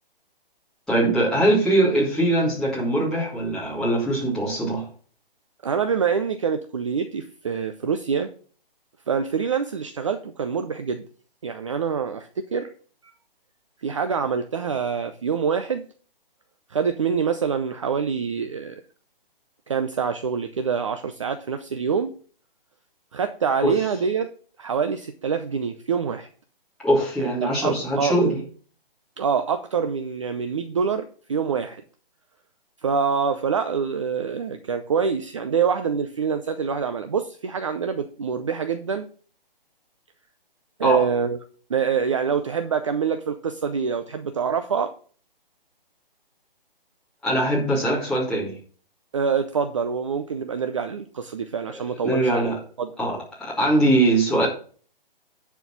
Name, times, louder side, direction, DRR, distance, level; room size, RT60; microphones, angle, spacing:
voice 1, 0.9-4.9 23.6-23.7 26.8-28.4 40.8-41.1 47.2-48.5 52.0-52.6 53.0-54.5, right 1 dB, ahead, -7 dB, 2.6 m, -22 dB
voice 2, 5.6-8.3 9.1-11.0 11.4-12.7 13.8-15.8 16.7-18.8 19.7-22.1 23.1-24.3 24.6-26.3 27.2-28.2 29.2-31.8 32.8-39.1 40.8-41.4 41.7-44.9 49.1-52.5 52.8-52.9, right 6 dB, 35° right, 8 dB, 0.6 m, -25 dB
10.5 x 4.6 x 5.9 m, 0.42 s
hypercardioid pair, 165°, 29 cm